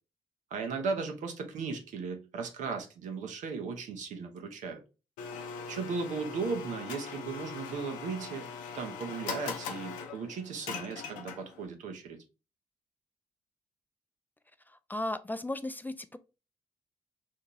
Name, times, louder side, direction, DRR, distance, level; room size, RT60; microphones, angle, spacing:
voice 1, 0.5-4.8 5.7-12.2, right 4 dB, 70° right, 0.8 m, -36 dB
Domestic sounds home sounds, 5.2-11.7, left 6 dB, 85° left, 0.5 m, -41 dB
voice 2, 14.7-16.2, left 1 dB, 15° left, 0.4 m, -36 dB
2.8 x 2.7 x 3.7 m
hypercardioid pair, 45°, 13 cm